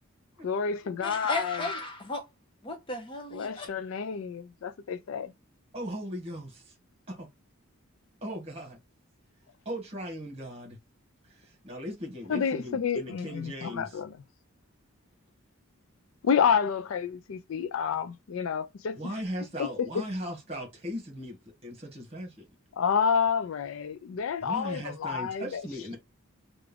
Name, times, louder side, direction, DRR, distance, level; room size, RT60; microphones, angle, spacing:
voice 1, 0.4-1.6 3.3-5.3 12.3-14.1 16.2-19.0 19.6-19.9 22.8-25.6, left 6 dB, 65° left, 0.4 m, -29 dB
voice 2, 1.0-2.2 2.6-3.7, left 2 dB, 25° left, 0.7 m, -34 dB
voice 3, 5.7-6.7 7.1-7.3 8.2-8.8 9.6-10.8 11.2-14.0 19.0-21.3 21.6-22.5 24.4-26.0, equal, 30° right, 1.5 m, -38 dB
3.5 x 2.5 x 3.4 m
head